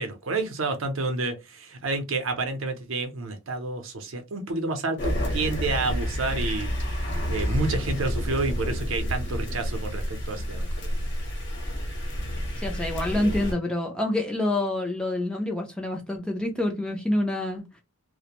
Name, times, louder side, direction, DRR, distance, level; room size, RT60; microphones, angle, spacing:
voice 1, 0.0-10.9, right 3 dB, 65° right, 0.6 m, -30 dB
sound 1, 5.0-13.5, equal, 55° left, 0.9 m, -29 dB
voice 2, 12.6-17.8, left 1 dB, 5° left, 0.4 m, -27 dB
2.4 x 2.1 x 2.9 m
head